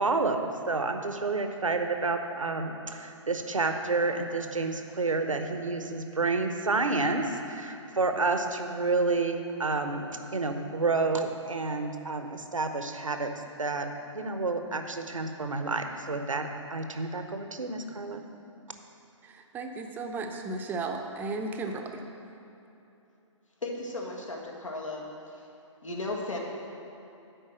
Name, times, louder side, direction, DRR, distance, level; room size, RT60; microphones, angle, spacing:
voice 1, 0.0-10.1 10.3-13.3 13.6-18.2, right 3 dB, 85° right, 6 dB, 0.9 m, -29 dB
voice 2, 19.2-22.0, right 3 dB, 10° right, 3 dB, 0.6 m, -35 dB
voice 3, 23.6-25.0 25.8-26.4, left 2 dB, 80° left, -1 dB, 1.8 m, -35 dB
10.0 x 4.6 x 7.5 m, 2.8 s
figure-of-eight pair, 130°, 16 cm